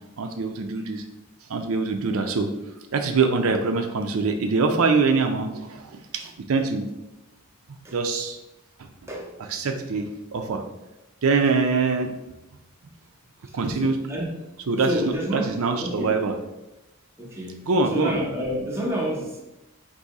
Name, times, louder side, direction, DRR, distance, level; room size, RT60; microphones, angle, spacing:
voice 1, 0.2-1.0 1.5-2.5 2.9-6.9 7.9-8.4 9.4-10.6 11.2-12.1 13.5-14.0 14.7-15.0 15.3-16.4 17.7-18.2, right 4 dB, 70° right, 5 dB, 0.5 m, -24 dB
voice 2, 13.7-14.3 14.8-16.1 17.2-17.6 17.9-19.4, equal, 10° right, -3 dB, 0.8 m, -29 dB
4.0 x 2.7 x 4.8 m, 0.96 s
head